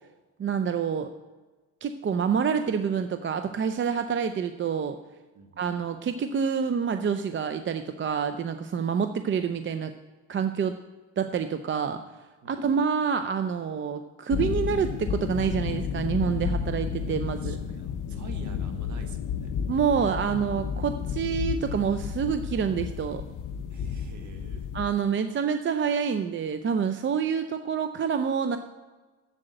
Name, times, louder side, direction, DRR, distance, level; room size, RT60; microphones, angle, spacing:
voice 1, 0.4-1.1 1.8-5.0 5.6-9.9 10.3-10.8 11.2-12.0 12.5-17.6 19.7-23.2 24.7-28.6, right 6 dB, 35° right, 8 dB, 0.5 m, -27 dB
sound 1, 14.3-24.9, left 7 dB, 55° left, 0.7 m, -32 dB
voice 2, 17.3-19.5 23.7-24.7, right 4 dB, 50° right, 5 dB, 1.6 m, -47 dB
7.7 x 7.5 x 7.8 m, 1.3 s
cardioid pair, 110°, 36 cm